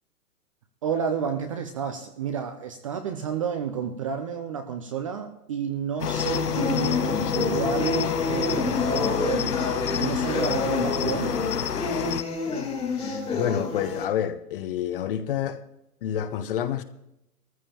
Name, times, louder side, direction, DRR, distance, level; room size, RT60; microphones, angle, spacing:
voice 1, 0.8-9.6 10.0-11.4, right 7 dB, 25° right, 0.5 m, -31 dB
Cricket, 6.0-12.2, left 9 dB, 90° left, 0.9 m, -29 dB
sound 1, 6.1-14.0, left 4 dB, 15° left, 1.8 m, -28 dB
voice 2, 13.3-15.6 16.0-16.8, left 10 dB, 35° left, 0.8 m, -28 dB
19.5 x 14.0 x 2.9 m
hypercardioid pair, 135°, 46 cm